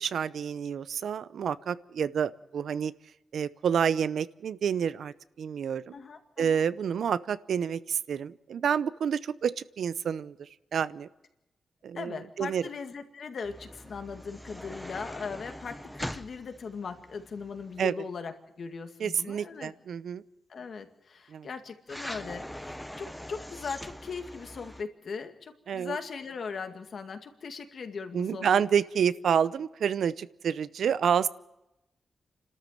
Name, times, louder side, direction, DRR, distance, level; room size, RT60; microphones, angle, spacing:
voice 1, 0.0-2.9 3.3-5.9 6.4-11.1 11.8-12.6 17.8-17.9 19.0-20.2 21.3-21.5 25.7-26.0 28.1-31.3, right 7 dB, 80° right, 16 dB, 0.7 m, -29 dB
voice 2, 5.9-6.6 11.9-19.7 20.5-28.5, left 5 dB, 55° left, 7 dB, 2.1 m, -39 dB
sound 1, 13.4-17.9 21.9-24.8, equal, 5° left, 0.9 m, -42 dB
29.5 x 13.0 x 7.4 m, 0.91 s
wide cardioid pair, 150°, 0 cm